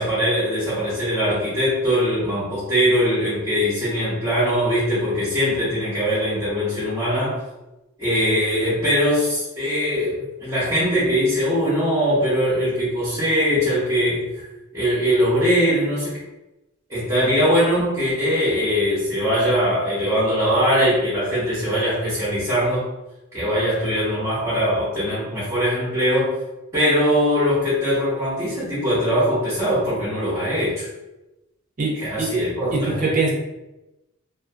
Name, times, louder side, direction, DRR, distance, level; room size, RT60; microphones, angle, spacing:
voice 1, 0.0-7.4 8.0-14.2 14.7-16.2 16.9-22.9 23.3-26.3 26.7-30.9 31.9-33.1, equal, 15° right, -11 dB, 0.9 m, -21 dB
voice 2, 31.8-32.3 32.7-33.3, right 3 dB, 40° right, -1 dB, 0.4 m, -23 dB
2.5 x 2.4 x 2.4 m, 0.99 s
head